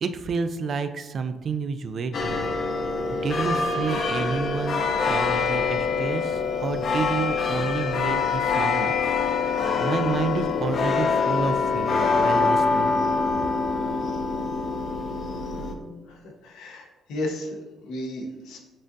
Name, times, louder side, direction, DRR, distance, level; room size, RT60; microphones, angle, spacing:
voice 1, 0.0-2.5 3.1-8.9 9.8-12.9, right 5 dB, 55° right, 9 dB, 0.3 m, -30 dB
sound 1, 2.1-15.7, left 4 dB, 60° left, 0.6 m, -25 dB
voice 2, 16.1-18.6, left 1 dB, 90° left, 1 dB, 0.8 m, -34 dB
7.3 x 2.5 x 2.6 m, 1.2 s
cardioid pair, 90°, 0 cm